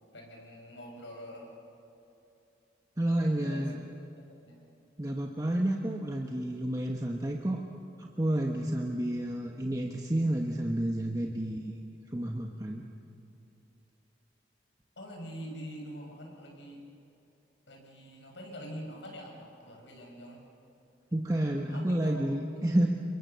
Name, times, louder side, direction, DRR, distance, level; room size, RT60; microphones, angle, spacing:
voice 1, 0.1-1.5 3.1-3.8 4.2-4.6 15.0-16.8 17.7-20.4 21.5-22.3 22.6-22.7, equal, 85° left, 0 dB, 6.3 m, -45 dB
voice 2, 3.0-3.7 5.0-7.6 8.0-11.7 12.1-12.8 21.1-22.9, right 1 dB, 20° right, 1 dB, 1.1 m, -30 dB
28.5 x 22.5 x 6.9 m, 2.9 s
head